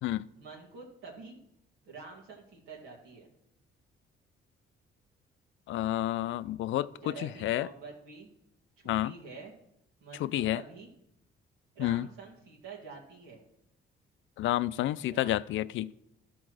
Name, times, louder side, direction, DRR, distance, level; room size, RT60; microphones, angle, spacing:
voice 1, 0.4-1.4 1.8-3.3 7.0-8.3 8.8-9.5 10.0-10.9 11.7-13.4 15.1-15.6, right 4 dB, 85° right, 2.1 m, -47 dB
voice 2, 5.7-7.7 8.9-9.1 10.2-10.6 11.8-12.1 14.4-15.9, left 14 dB, 75° left, 0.4 m, -30 dB
12.0 x 4.3 x 6.2 m
cardioid pair, 90°, 20 cm